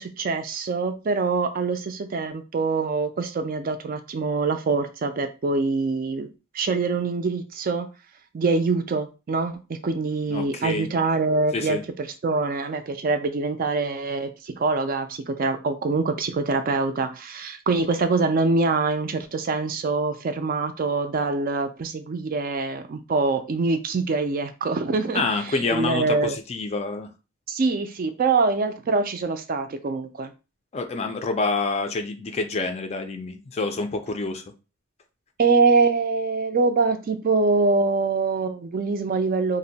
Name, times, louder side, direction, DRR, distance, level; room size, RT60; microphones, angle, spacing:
voice 1, 0.0-6.3 6.5-7.9 8.3-26.4 27.5-30.3 35.4-39.6, right 3 dB, 40° right, 0.3 m, -24 dB
voice 2, 10.3-10.9 11.5-11.8 25.1-27.1 30.7-34.4, left 3 dB, 30° left, 0.3 m, -27 dB
2.6 x 2.1 x 3.9 m
head